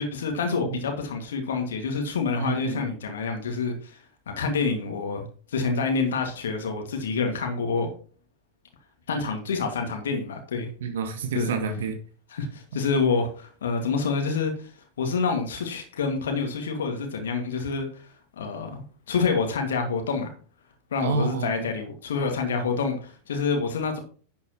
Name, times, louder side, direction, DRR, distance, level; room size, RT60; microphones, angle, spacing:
voice 1, 0.0-7.9 9.1-10.7 11.3-11.5 12.3-20.3 20.9-24.0, left 4 dB, 65° left, 2.0 m, -27 dB
voice 2, 2.4-2.8 10.8-12.0 21.0-21.7, right 5 dB, 60° right, 1.6 m, -29 dB
11.0 x 8.4 x 3.0 m
figure-of-eight pair, 90°, 0 cm